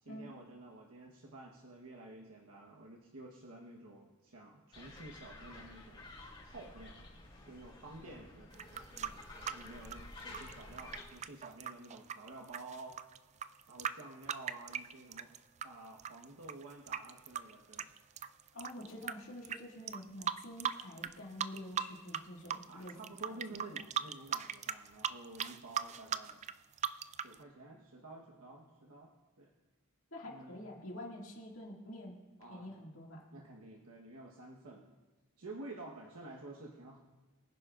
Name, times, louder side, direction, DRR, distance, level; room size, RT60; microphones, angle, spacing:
voice 1, 0.0-6.1 6.4-7.0 7.4-13.0 13.7-15.3 15.6-17.9 22.7-26.4 27.2-29.1 29.4-29.5 30.3-30.6 32.4-32.7 33.3-34.9 35.4-37.0, right 2 dB, 85° right, -1 dB, 1.2 m, -51 dB
sound 1, 4.7-11.0, left 2 dB, 25° left, 3.5 m, -51 dB
sound 2, 8.5-15.7 16.0-19.1 19.4-19.6 19.9-21.1 21.4-22.2 22.5-27.3, right 8 dB, 30° right, 0.3 m, -38 dB
voice 2, 18.5-23.4 30.1-32.1 32.5-33.3, left 1 dB, 65° left, -2 dB, 2.2 m, -47 dB
23.5 x 10.0 x 2.5 m, 1.3 s
head